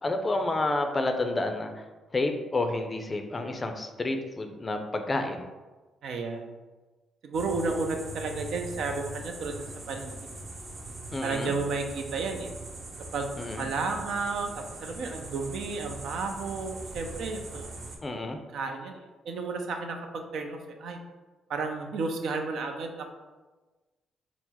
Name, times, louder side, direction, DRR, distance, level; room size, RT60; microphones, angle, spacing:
voice 1, 0.0-1.9 2.1-5.4 11.1-11.5 13.4-13.7 18.0-18.4, left 2 dB, 30° left, 5 dB, 0.4 m, -30 dB
voice 2, 6.0-6.5 7.2-10.1 11.2-12.5 13.1-14.5 14.8-17.7 18.5-21.0 21.5-23.1, right 4 dB, 70° right, 4 dB, 0.5 m, -32 dB
sound 1, 7.3-18.0, right 2 dB, 40° right, 0.8 m, -41 dB
4.4 x 2.0 x 4.1 m, 1.2 s
cardioid pair, 90°, 0 cm